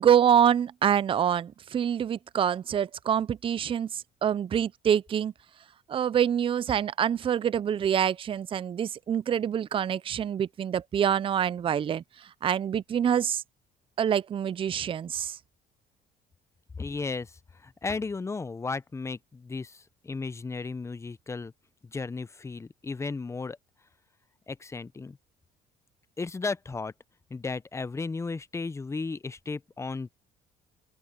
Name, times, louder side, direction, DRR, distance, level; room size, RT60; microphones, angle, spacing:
voice 1, 0.0-5.3 5.9-13.4 14.0-15.4, right 9 dB, 30° right, 0.4 m, -26 dB
voice 2, 16.8-17.3 17.6-21.5 21.8-23.6 24.5-25.2 26.2-26.9 27.3-30.1, left 4 dB, 15° left, 0.6 m, -34 dB
open air
cardioid pair, 110°, 17 cm